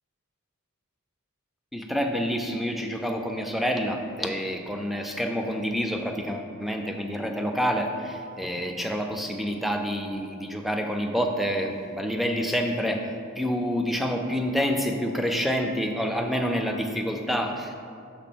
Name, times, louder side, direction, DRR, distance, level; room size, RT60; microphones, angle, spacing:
voice 1, 1.7-13.0 13.4-17.7, equal, ahead, 3 dB, 0.4 m, -28 dB
6.0 x 3.6 x 6.0 m, 2.4 s
head